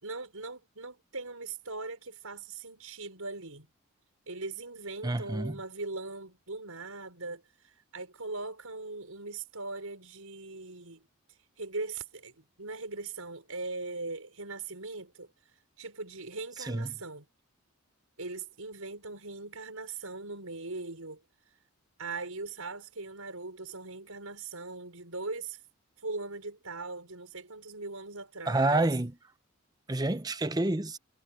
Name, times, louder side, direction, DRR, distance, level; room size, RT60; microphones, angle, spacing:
voice 1, 0.0-3.7 4.3-11.0 11.3-12.3 12.6-15.3 15.8-17.3 18.2-21.2 22.0-25.6 26.0-29.0, right 3 dB, 85° right, 5.6 m, -40 dB
voice 2, 5.0-5.5 16.7-16.9 28.5-29.1 29.9-31.0, right 2 dB, 20° right, 0.8 m, -28 dB
head